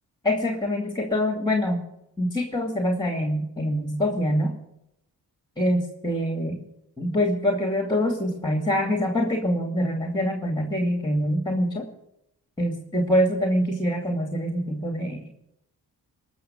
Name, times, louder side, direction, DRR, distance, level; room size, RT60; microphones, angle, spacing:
voice 1, 0.2-1.8 2.2-4.5 5.6-6.6 7.0-11.9 12.6-15.2, equal, 10° left, 3 dB, 2.5 m, -25 dB
19.5 x 6.8 x 8.6 m, 0.81 s
cardioid pair, 55°, 39 cm